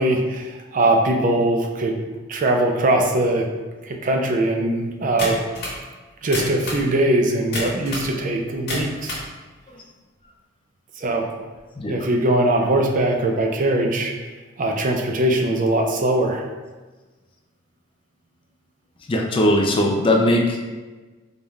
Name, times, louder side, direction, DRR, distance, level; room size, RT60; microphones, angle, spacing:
voice 1, 0.0-2.0 2.3-3.5 3.8-5.4 6.2-9.2 11.0-11.3 11.9-14.1 14.6-16.5, right 1 dB, 40° right, 2 dB, 0.4 m, -21 dB
sound 1, 5.2-5.8 6.2-6.9 7.5-8.1 8.5-9.3, left 1 dB, 55° left, 1.3 m, -28 dB
voice 2, 11.8-12.1 19.1-20.7, left 1 dB, 25° left, 0 dB, 0.4 m, -20 dB
4.0 x 3.5 x 2.3 m, 1.3 s
head